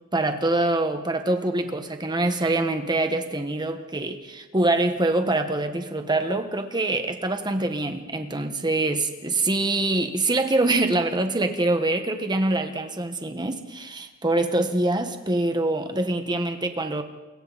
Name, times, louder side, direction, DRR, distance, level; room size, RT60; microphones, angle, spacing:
voice 1, 0.1-17.0, right 2 dB, 20° right, 7 dB, 1.5 m, -24 dB
28.5 x 23.0 x 4.2 m, 1.1 s
head